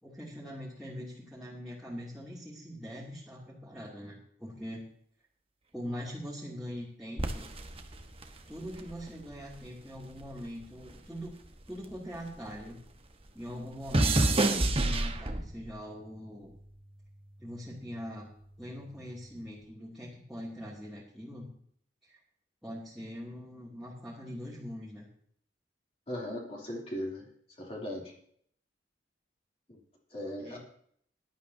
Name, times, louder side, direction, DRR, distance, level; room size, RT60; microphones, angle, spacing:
voice 1, 0.0-4.8 5.7-7.5 8.5-11.3 11.7-12.8 13.3-16.5 17.4-18.3 18.6-21.5 22.0-22.2 22.6-25.1 30.4-30.6, equal, ahead, -9 dB, 2.7 m, -42 dB
sound 1, 7.2-9.7 10.0-12.6 12.9-15.7 16.4-16.8, right 2 dB, 30° right, 1.2 m, -30 dB
voice 2, 26.1-27.3 27.6-28.1 29.7-29.8 30.1-30.6, left 1 dB, 35° left, -2 dB, 3.1 m, -38 dB
17.5 x 11.5 x 2.8 m, 0.64 s
head